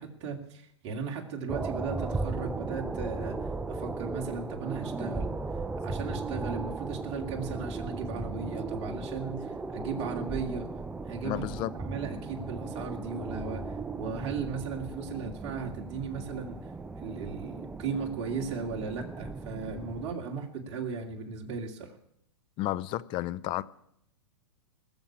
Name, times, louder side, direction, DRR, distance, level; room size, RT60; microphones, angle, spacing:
voice 1, 0.0-3.4 3.7-5.3 5.8-10.7 11.1-11.5 11.7-16.6 17.0-22.0, right 5 dB, 40° right, 2.5 m, -36 dB
sound 1, 1.5-20.1, right 3 dB, 5° right, 0.5 m, -37 dB
voice 2, 11.2-11.7 22.6-23.6, left 15 dB, 35° left, 0.7 m, -32 dB
19.5 x 7.2 x 8.7 m
hypercardioid pair, 125°, 15 cm